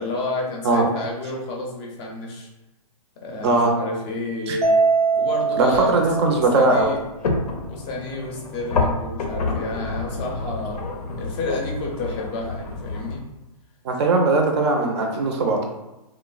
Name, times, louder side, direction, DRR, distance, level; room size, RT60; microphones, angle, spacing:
voice 1, 0.0-2.5 3.2-4.7 5.1-5.9 6.2-7.0 7.6-10.8 11.2-13.2, left 2 dB, 25° left, -1 dB, 0.5 m, -30 dB
Mallet percussion, 4.6-7.1, right 4 dB, 85° right, 0.6 m, -22 dB
voice 2, 5.6-6.9 13.8-15.6, right 3 dB, 45° right, 2 dB, 0.5 m, -19 dB
sound 1, 5.7-13.2, left 3 dB, 80° left, 0.6 m, -29 dB
3.0 x 2.0 x 2.3 m, 0.97 s
hypercardioid pair, 140°, 20 cm